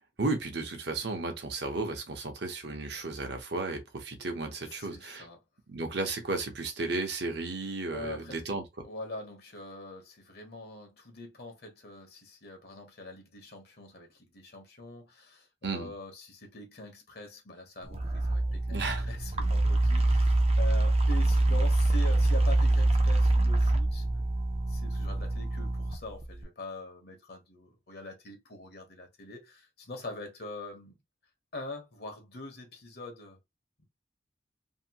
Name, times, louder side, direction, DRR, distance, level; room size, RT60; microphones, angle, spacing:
voice 1, 0.2-5.3 5.7-8.6 15.6-15.9 18.7-19.1, right 3 dB, 60° right, 0.9 m, -34 dB
voice 2, 4.7-5.4 7.9-8.4 8.8-24.0 24.7-31.0 31.5-33.4 33.8-33.9, left 2 dB, 55° left, 1.0 m, -43 dB
sound 1, 17.8-26.4, right 2 dB, 30° right, 0.5 m, -25 dB
2.8 x 2.7 x 2.8 m
head